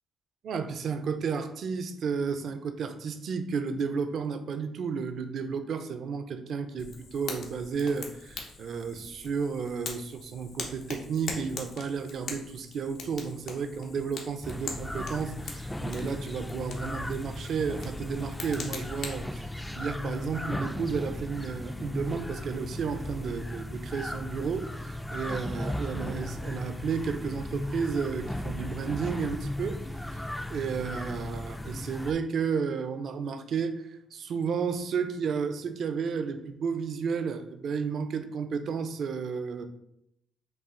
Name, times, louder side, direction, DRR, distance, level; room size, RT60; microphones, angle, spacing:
voice 1, 0.4-19.5 19.8-29.8 30.1-39.6, right 5 dB, 65° right, 8 dB, 0.5 m, -32 dB
Fire, 6.8-19.2, left 4 dB, 80° left, 0.9 m, -42 dB
sound 1, 14.4-32.1, left 1 dB, 5° left, 0.3 m, -36 dB
5.5 x 2.4 x 3.7 m, 0.77 s
cardioid pair, 90°, 0 cm